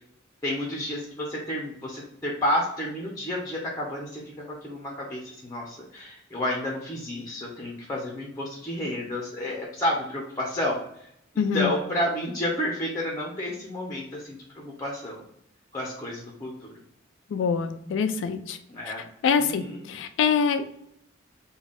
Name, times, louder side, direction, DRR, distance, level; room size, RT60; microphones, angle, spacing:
voice 1, 0.4-11.1 11.3-15.2 15.7-16.7 18.7-19.0 19.4-19.9, left 1 dB, 15° left, -2 dB, 0.7 m, -31 dB
voice 2, 11.4-11.7 17.3-18.6 19.2-20.7, left 6 dB, 65° left, 10 dB, 0.3 m, -25 dB
3.8 x 2.3 x 3.5 m, 0.73 s
head